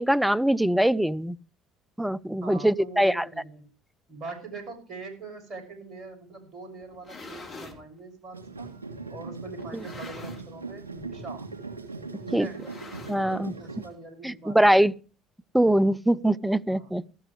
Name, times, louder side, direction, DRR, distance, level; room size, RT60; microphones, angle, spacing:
voice 1, 0.0-1.4 2.0-3.2 12.3-12.5 13.1-13.5 14.2-14.9 15.5-17.0, right 1 dB, 5° right, 15 dB, 0.6 m, -22 dB
voice 2, 2.4-3.7 4.1-8.7 9.1-11.5 12.2-12.7 13.2-14.9 16.7-16.9, right 3 dB, 45° right, 7 dB, 6.6 m, -43 dB
sound 1, 6.8-7.8 8.6-8.7 9.6-10.6 10.9-11.2 11.5-11.6 12.4-13.5, left 3 dB, 40° left, 4.4 m, -45 dB
sound 2, 8.3-13.9, right 3 dB, 85° right, 2.9 m, -39 dB
18.0 x 13.5 x 3.3 m, 0.35 s
figure-of-eight pair, 55°, 0 cm